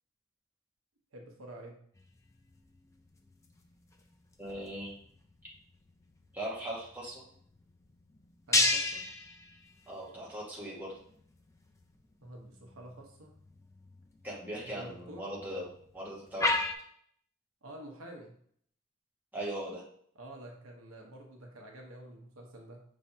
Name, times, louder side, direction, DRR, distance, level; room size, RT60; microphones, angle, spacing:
voice 1, 1.1-1.8 8.5-9.0 12.2-13.3 14.8-15.3 17.6-18.4 20.2-22.8, right 1 dB, 75° right, 1 dB, 0.9 m, -48 dB
sound 1, 2.0-16.8, left 2 dB, 15° left, 0.3 m, -37 dB
voice 2, 4.4-5.0 6.3-7.2 9.9-11.0 14.2-15.7 15.9-16.6 19.3-19.8, right 1 dB, 10° right, -6 dB, 1.1 m, -39 dB
5.4 x 3.2 x 2.7 m, 0.63 s
head